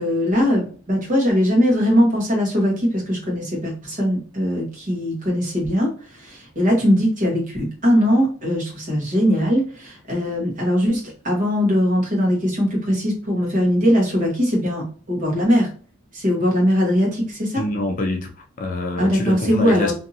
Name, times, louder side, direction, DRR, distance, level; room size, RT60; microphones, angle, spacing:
voice 1, 0.0-15.7 16.1-17.6 19.0-19.9, equal, 35° right, 1.1 m, -20 dB
voice 2, 17.6-19.9, left 2 dB, 35° left, 0.4 m, -25 dB
2.6 x 2.6 x 2.7 m
head